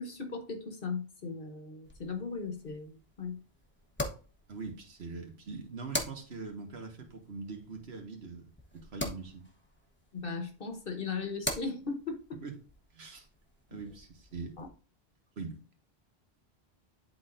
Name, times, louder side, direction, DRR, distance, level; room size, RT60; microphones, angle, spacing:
voice 1, 0.0-3.4 10.1-12.4 14.6-14.7, left 4 dB, 55° left, 1.4 m, -37 dB
sound 1, 1.8-14.7, left 1 dB, 10° left, 1.0 m, -44 dB
voice 2, 4.5-9.5 12.4-12.6 12.9-13.3 13.7-14.6 15.4-15.6, right 4 dB, 70° right, 1.5 m, -42 dB
10.5 x 4.1 x 2.5 m
omnidirectional pair, 1.1 m